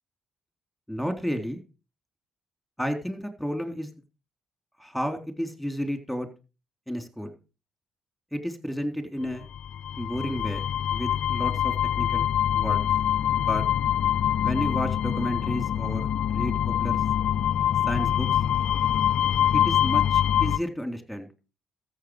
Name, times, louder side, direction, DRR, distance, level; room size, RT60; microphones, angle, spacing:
voice 1, 0.9-1.6 2.8-3.9 4.8-6.3 6.9-7.4 8.3-9.4 10.0-10.6 10.9-12.3 12.5-12.8 13.4-13.6 14.4-16.5 16.8-17.0 17.9-18.3 19.5-21.3, equal, ahead, 6 dB, 3.8 m, -31 dB
sound 1, 9.5-20.6, left 10 dB, 70° left, 0.5 m, -24 dB
14.0 x 8.1 x 5.1 m, 0.32 s
supercardioid pair, 50°, 2 cm